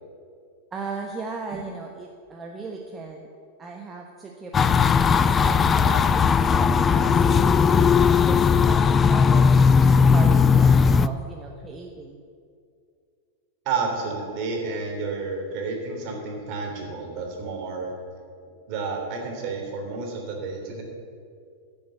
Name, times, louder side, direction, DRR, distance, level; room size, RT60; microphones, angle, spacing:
voice 1, 0.7-3.3 3.6-7.4 8.0-12.2, right 4 dB, 20° right, 1 dB, 1.1 m, -37 dB
sound 1, 4.5-11.1, left 6 dB, 20° left, 0.4 m, -18 dB
voice 2, 13.6-17.9 18.7-20.8, right 4 dB, 45° right, 1 dB, 3.3 m, -30 dB
14.5 x 7.2 x 8.0 m, 2.3 s
figure-of-eight pair, 90°, 0 cm